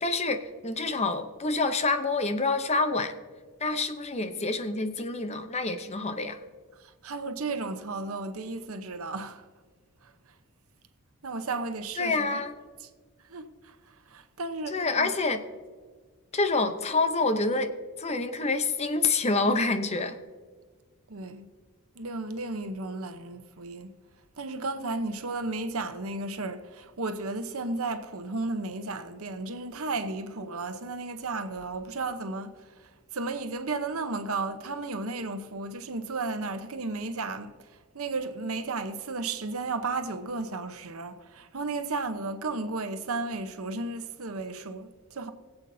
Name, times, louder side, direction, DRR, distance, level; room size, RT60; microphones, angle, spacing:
voice 1, 0.0-3.1 3.6-6.4 12.0-12.5 14.7-15.4 16.3-17.7 18.0-20.2, left 3 dB, 30° left, 0.7 m, -27 dB
voice 2, 6.7-9.5 10.0-10.1 11.2-12.4 13.3-15.1 21.1-21.5 21.9-23.9 24.4-45.3, right 3 dB, 75° right, 0.9 m, -34 dB
21.5 x 8.0 x 2.7 m
head